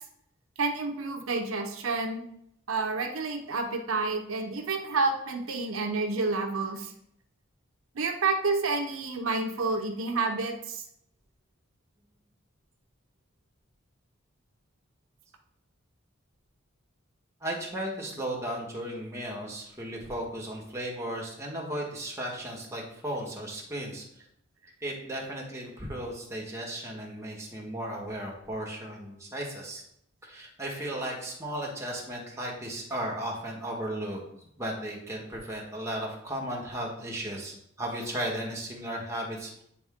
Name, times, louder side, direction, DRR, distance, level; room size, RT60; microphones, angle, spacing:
voice 1, 0.6-2.2 2.7-6.9 7.9-10.8 31.0-31.1, right 3 dB, 80° right, 4 dB, 0.8 m, -29 dB
voice 2, 17.4-24.0 24.8-29.8 30.2-39.6, right 1 dB, 15° right, -2 dB, 1.4 m, -35 dB
8.7 x 3.6 x 3.6 m, 0.73 s
head